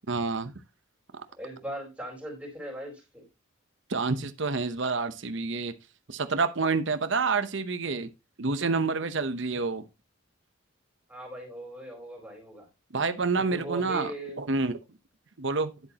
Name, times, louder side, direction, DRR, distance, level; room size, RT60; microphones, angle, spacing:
voice 1, 0.1-0.5 3.9-5.7 6.1-8.1 8.4-9.8 12.9-14.1 14.4-14.8 15.4-15.7, right 4 dB, 60° right, 0.8 m, -28 dB
voice 2, 1.4-3.2 11.1-12.7 13.4-14.4, right 1 dB, 5° right, 4.1 m, -39 dB
10.5 x 8.3 x 2.9 m
head